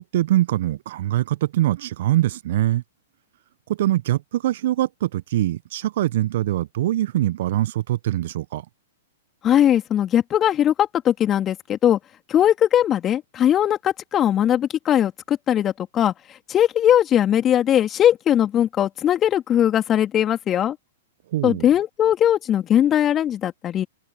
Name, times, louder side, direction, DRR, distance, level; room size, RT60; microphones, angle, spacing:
voice 1, 0.0-2.8 3.7-8.6 21.3-21.7, right 14 dB, 55° right, 1.1 m, -23 dB
voice 2, 9.4-12.0 12.3-16.1 16.5-20.8 21.4-23.9, left 10 dB, 25° left, 2.8 m, -19 dB
figure-of-eight pair, 105°, 0 cm